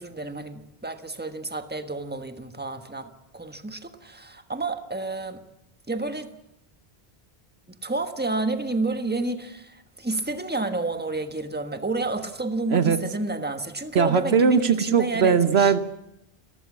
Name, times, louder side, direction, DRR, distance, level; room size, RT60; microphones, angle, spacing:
voice 1, 0.0-5.4 5.9-6.3 7.7-15.7, right 2 dB, 10° right, 1.3 m, -30 dB
voice 2, 13.9-15.8, right 6 dB, 85° right, 1.3 m, -20 dB
29.5 x 14.5 x 7.4 m
omnidirectional pair, 1.0 m